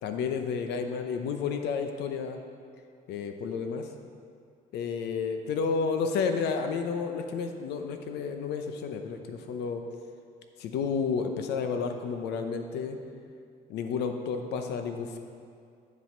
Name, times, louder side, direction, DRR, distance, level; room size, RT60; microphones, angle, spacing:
voice 1, 0.0-2.4 3.1-3.9 4.7-9.8 10.6-13.0 13.7-15.2, left 5 dB, 80° left, 6 dB, 0.8 m, -31 dB
9.9 x 6.3 x 4.4 m, 2.3 s
cardioid pair, 110°, 17 cm